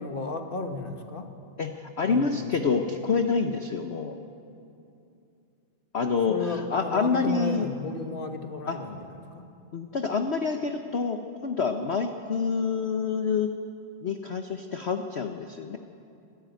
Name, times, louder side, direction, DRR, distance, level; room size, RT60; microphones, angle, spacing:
voice 1, 0.0-1.3 2.0-2.7 6.3-9.4, left 3 dB, 30° left, 5 dB, 1.4 m, -34 dB
voice 2, 1.6-4.2 5.9-7.7 8.7-8.8 9.7-13.5 14.0-15.8, left 5 dB, 50° left, 6 dB, 0.8 m, -27 dB
24.0 x 14.5 x 9.3 m, 2.6 s
omnidirectional pair, 2.2 m